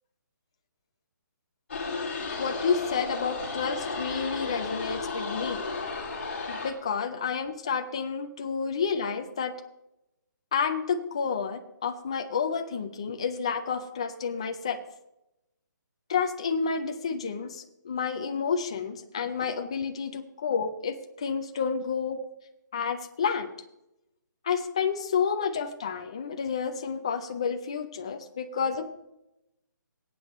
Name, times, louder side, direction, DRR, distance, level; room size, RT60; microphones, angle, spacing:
sound 1, 1.7-6.7, left 4 dB, 35° left, 1.9 m, -34 dB
voice 1, 2.4-5.6 6.5-9.5 10.5-14.8 16.1-22.2 22.7-23.5 24.4-28.9, left 6 dB, 15° left, 6 dB, 0.4 m, -30 dB
17.5 x 8.3 x 3.0 m, 0.89 s
hypercardioid pair, 180°, 11 cm